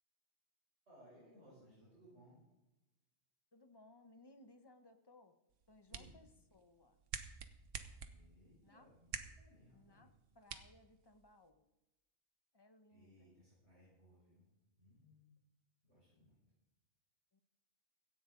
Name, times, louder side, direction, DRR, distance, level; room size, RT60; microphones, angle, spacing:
voice 1, 0.9-2.4 5.9-6.2 8.1-10.1 12.9-14.5 14.8-15.4 15.8-16.4, equal, 65° right, -8 dB, 7.0 m, -64 dB
voice 2, 3.5-5.4 5.7-7.0 8.6-8.9 9.7-11.6 12.5-13.3 17.3-17.4, left 2 dB, 20° left, 8 dB, 1.0 m, -64 dB
sound 1, 5.5-11.5, right 6 dB, 85° right, 1.4 m, -51 dB
17.0 x 13.0 x 3.9 m, 1.0 s
omnidirectional pair, 1.2 m